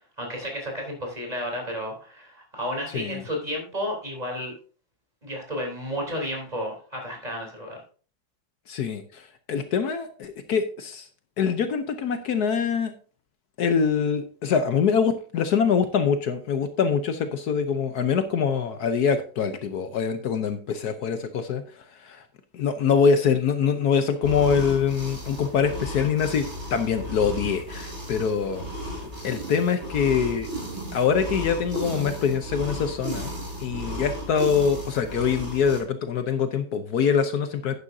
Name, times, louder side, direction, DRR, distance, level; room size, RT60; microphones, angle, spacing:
voice 1, 0.2-4.6 5.2-7.8, equal, 20° right, 0 dB, 3.6 m, -32 dB
voice 2, 8.7-11.1 11.4-12.9 13.6-21.6 22.0-22.2 22.5-28.6 29.2-30.5 30.9-33.3 33.6-37.7, left 6 dB, 70° left, 8 dB, 1.3 m, -24 dB
sound 1, 24.2-35.8, equal, 40° right, 4.1 m, -34 dB
11.0 x 9.8 x 2.7 m, 0.40 s
omnidirectional pair, 1.9 m